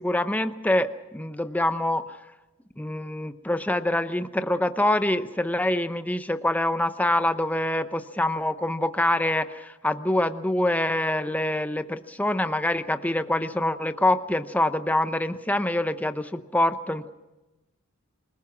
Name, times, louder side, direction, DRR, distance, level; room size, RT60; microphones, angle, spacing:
voice 1, 0.0-2.2 2.8-17.1, left 1 dB, 5° left, 10 dB, 0.8 m, -25 dB
27.0 x 19.5 x 6.0 m, 1.0 s
head